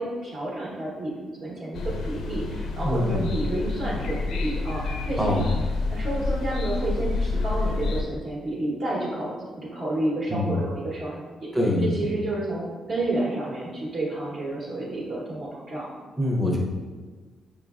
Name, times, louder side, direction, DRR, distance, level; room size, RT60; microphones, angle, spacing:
voice 1, 0.0-5.4 5.9-11.5 11.8-15.9, right 2 dB, 50° right, -5 dB, 0.9 m, -30 dB
sound 1, 1.7-8.0, left 3 dB, 75° left, 0.4 m, -28 dB
voice 2, 2.8-3.3 5.2-5.4 10.3-10.6 11.5-12.0 16.2-16.6, left 1 dB, 5° right, -1 dB, 0.6 m, -24 dB
4.9 x 3.2 x 2.3 m, 1.5 s
cardioid pair, 150°, 0 cm